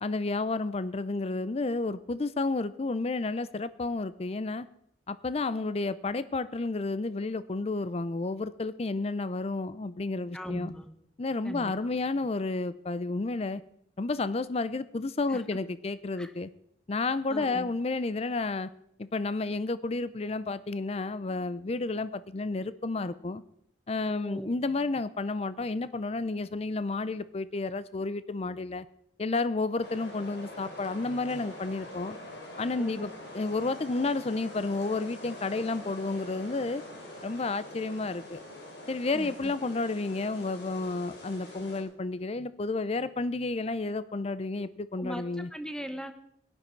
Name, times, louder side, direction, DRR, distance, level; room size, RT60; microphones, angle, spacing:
voice 1, 0.0-4.7 5.1-10.7 11.2-13.6 14.0-16.5 16.9-18.7 19.0-23.4 23.9-28.9 29.2-32.2 32.6-36.8 37.2-38.4 38.9-45.5, left 3 dB, 35° left, 16 dB, 0.5 m, -31 dB
voice 2, 10.3-10.9 11.4-11.7 15.3-15.6 16.1-16.3 17.3-17.7 24.1-24.5 32.8-32.9 39.1-39.5 45.0-46.1, equal, 5° left, 8 dB, 1.0 m, -39 dB
sound 1, 29.8-41.8, left 1 dB, 70° left, 3.8 m, -45 dB
17.5 x 11.5 x 4.6 m, 0.70 s
head